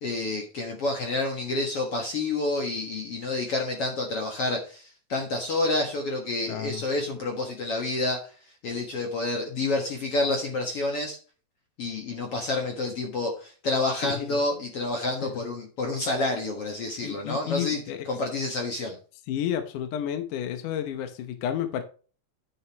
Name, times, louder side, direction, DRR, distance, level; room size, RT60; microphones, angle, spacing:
voice 1, 0.0-8.3 8.6-11.2 11.8-19.0, left 2 dB, 55° left, 1.8 m, -29 dB
voice 2, 6.5-6.8 14.0-14.4 15.2-15.3 17.0-18.1 19.3-21.8, left 10 dB, 70° left, 2.1 m, -31 dB
11.0 x 6.6 x 3.0 m
omnidirectional pair, 4.5 m